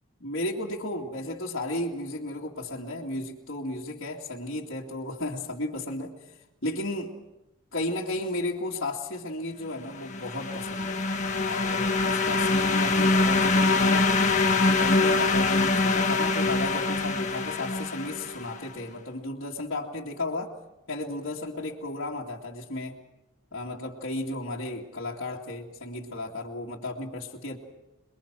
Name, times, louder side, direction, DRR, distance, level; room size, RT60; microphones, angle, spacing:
voice 1, 0.2-6.1 6.6-7.1 7.7-11.0 11.4-14.1 14.6-20.5 20.9-23.0 23.5-27.6, left 2 dB, 60° left, -5 dB, 2.4 m, -34 dB
sound 1, 9.9-18.6, left 3 dB, 35° left, 1.6 m, -24 dB
28.0 x 22.0 x 6.1 m, 0.93 s
head